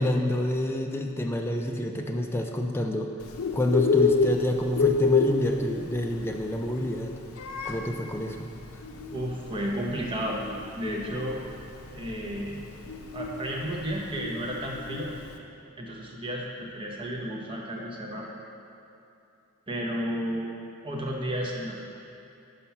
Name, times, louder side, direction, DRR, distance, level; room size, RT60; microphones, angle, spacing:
voice 1, 0.0-3.1 3.5-7.1 7.6-8.5, left 1 dB, 10° left, 2 dB, 0.3 m, -28 dB
Bird, 3.2-15.3, left 4 dB, 90° left, 0.5 m, -29 dB
voice 2, 9.1-10.4 10.7-11.4 11.9-12.6 13.1-15.1 15.8-18.3 19.7-20.5 20.8-21.8, equal, 25° right, -2 dB, 0.8 m, -32 dB
5.6 x 5.2 x 5.8 m, 2.7 s
head